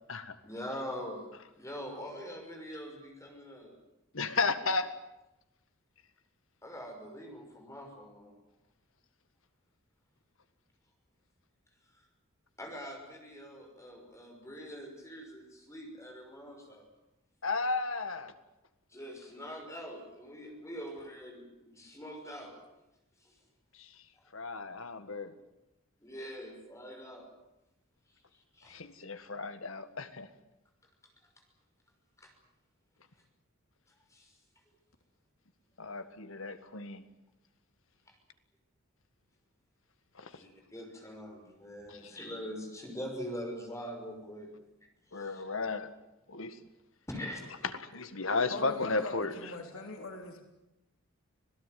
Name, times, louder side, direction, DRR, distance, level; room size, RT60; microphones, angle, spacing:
voice 1, 0.4-1.3 1.6-3.8 6.6-8.3 12.6-16.9 18.9-22.6 26.0-27.3 28.6-28.8 32.2-32.3 34.1-34.3 40.3-44.5 45.1-45.4 47.1-47.5 49.7-49.8, equal, 15° left, 3 dB, 5.8 m, -43 dB
voice 2, 4.1-4.9 17.4-18.3 24.3-25.3 28.7-30.3 35.8-37.0 40.2-40.3 41.9-42.0 45.1-45.9 46.3-46.6 47.9-49.3, left 3 dB, 70° left, 10 dB, 1.8 m, -33 dB
voice 3, 48.5-50.4, left 2 dB, 90° left, 3 dB, 3.3 m, -42 dB
26.5 x 17.5 x 9.4 m, 0.93 s
head